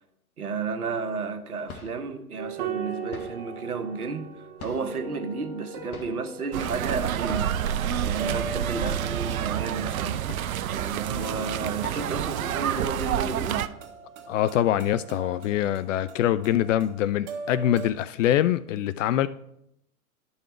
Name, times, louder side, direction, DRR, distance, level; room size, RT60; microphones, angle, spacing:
voice 1, 0.4-7.5 8.0-10.2 10.7-13.7, right 4 dB, 85° right, 1.2 m, -32 dB
sound 1, 0.7-0.8 1.5-2.1 3.1-3.5 4.6-5.1 5.9-6.3 7.2-7.7 8.0-8.1 8.5-8.6 8.8-9.2 10.2-10.8 11.2-11.3 11.8-12.2, left 4 dB, 80° left, 1.4 m, -43 dB
sound 2, 2.4-17.9, right 5 dB, 45° right, 1.8 m, -40 dB
sound 3, 6.5-13.7, right 10 dB, 70° right, 0.7 m, -28 dB
voice 2, 14.3-19.3, left 12 dB, 60° left, 0.5 m, -24 dB
12.5 x 5.5 x 4.4 m
hypercardioid pair, 110°, 43 cm